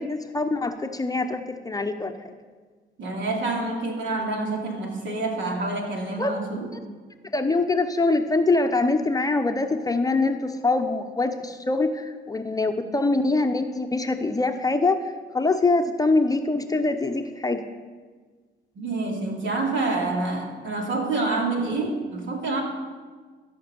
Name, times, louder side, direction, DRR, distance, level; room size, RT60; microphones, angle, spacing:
voice 1, 0.0-2.3 6.2-6.3 7.3-15.0 15.3-17.6, left 3 dB, 20° left, 6 dB, 0.7 m, -24 dB
voice 2, 3.0-6.7 18.7-22.6, right 3 dB, 70° right, 0 dB, 2.7 m, -27 dB
14.0 x 6.0 x 6.9 m, 1.5 s
cardioid pair, 90°, 20 cm